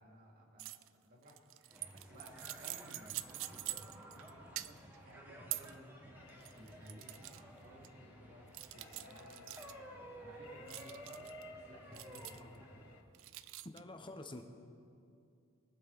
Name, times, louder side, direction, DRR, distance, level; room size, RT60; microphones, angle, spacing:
voice 1, 0.0-12.9, equal, 45° right, -2 dB, 2.5 m, -58 dB
sound 1, 0.6-0.9 1.2-4.3 4.6-5.0 5.5-5.7 6.3-7.4 7.8-7.9 8.5-9.7 10.7-11.4 11.9-12.6 13.1-13.8, right 17 dB, 65° right, 0.3 m, -45 dB
sound 2, 1.7-13.0, right 1 dB, 10° right, 1.5 m, -54 dB
sound 3, 6.2-13.0, left 5 dB, 65° left, 0.6 m, -60 dB
voice 2, 13.6-14.4, left 2 dB, 25° left, 6 dB, 0.9 m, -48 dB
22.5 x 7.6 x 4.0 m, 2.5 s
head